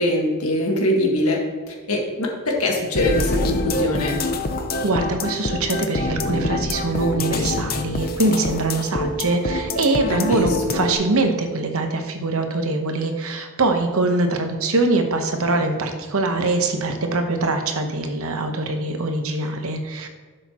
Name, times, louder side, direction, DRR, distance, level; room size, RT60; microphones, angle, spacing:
voice 1, 0.0-1.4 1.7-4.2 10.1-10.5 10.7-10.8, left 1 dB, 70° left, 0 dB, 1.7 m, -22 dB
sound 1, 2.9-10.9, left 2 dB, 45° left, 0.7 m, -26 dB
voice 2, 4.8-20.1, right 2 dB, 70° right, 5 dB, 1.0 m, -23 dB
11.5 x 6.5 x 3.0 m, 1.5 s
head